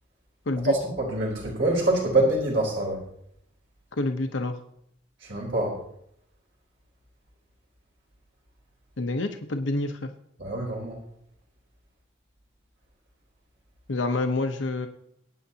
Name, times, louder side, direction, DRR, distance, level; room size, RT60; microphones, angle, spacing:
voice 1, 0.6-3.0 5.2-5.8 10.4-11.0, right 2 dB, 75° right, -3 dB, 3.8 m, -25 dB
voice 2, 4.0-4.6 9.0-10.1 13.9-14.9, left 2 dB, 85° left, 6 dB, 0.9 m, -27 dB
22.5 x 9.2 x 2.8 m, 0.74 s
head